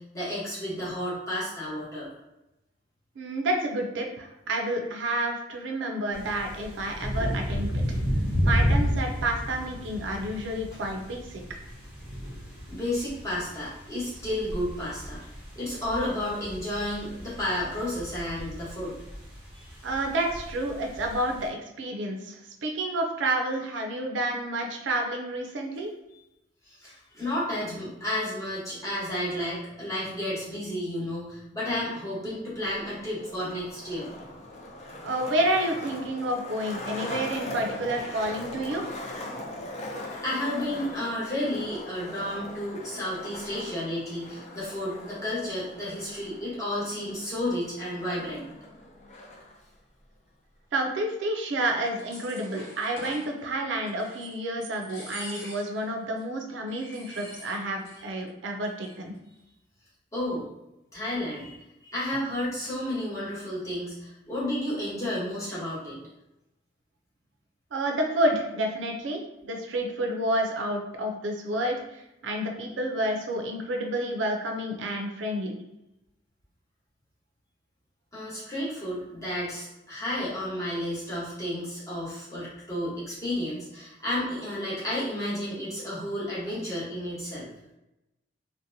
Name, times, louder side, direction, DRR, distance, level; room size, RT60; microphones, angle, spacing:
voice 1, 0.0-2.1 7.9-8.0 12.7-15.2 15.5-19.0 19.5-19.7 26.7-34.1 40.2-48.5 60.1-60.5 60.9-66.0 78.1-87.5, left 1 dB, 15° left, -9 dB, 1.0 m, -32 dB
voice 2, 3.2-7.7 8.4-11.4 19.8-25.9 35.0-38.9 50.7-59.1 67.7-75.5, right 1 dB, 80° right, 2 dB, 0.4 m, -29 dB
sound 1, 6.1-21.5, equal, 5° right, 0.7 m, -32 dB
Skateboard, 32.6-49.6, left 1 dB, 40° left, 0.4 m, -40 dB
sound 2, 51.7-53.3 53.8-54.4 54.6-55.8 56.2-56.3 56.7-58.0 58.3-58.4 58.6-59.2, left 1 dB, 60° left, 1.2 m, -44 dB
2.7 x 2.1 x 2.6 m, 0.89 s
head